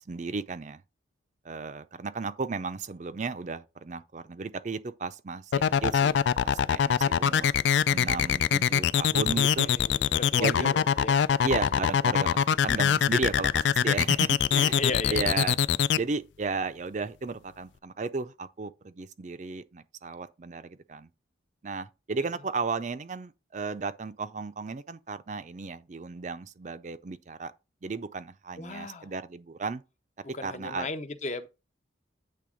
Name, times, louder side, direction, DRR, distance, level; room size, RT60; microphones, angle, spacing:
voice 1, 0.1-0.8 1.4-7.5 7.9-9.7 10.4-10.7 11.4-15.6 16.0-21.1 21.6-27.5 27.8-29.8 30.4-30.9, right 4 dB, 40° right, 0.5 m, -34 dB
sound 1, 5.5-16.0, left 8 dB, 70° left, 0.3 m, -23 dB
voice 2, 9.6-11.2 14.5-15.4 28.6-29.1 30.3-31.5, left 3 dB, 40° left, 0.7 m, -35 dB
8.5 x 3.5 x 5.0 m
head